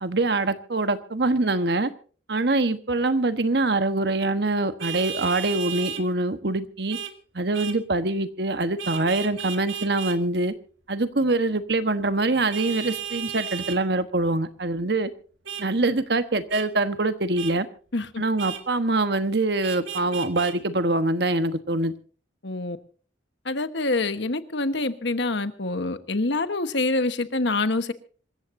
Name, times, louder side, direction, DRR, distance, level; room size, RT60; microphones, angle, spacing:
voice 1, 0.0-1.9 2.3-7.0 7.3-10.5 10.9-15.1 15.6-17.7 18.2-21.9, right 2 dB, 55° right, 1.3 m, -24 dB
Vehicle horn car horn honking, 4.8-6.0 6.9-7.1 7.5-7.8 8.8-10.2 12.5-13.8 15.5-15.7 16.5-16.7 17.4-17.6 18.4-18.6 19.6-20.6, right 8 dB, 85° right, 1.9 m, -34 dB
voice 2, 22.4-22.8 23.4-27.9, left 2 dB, 65° left, 1.3 m, -26 dB
26.5 x 14.5 x 2.7 m
head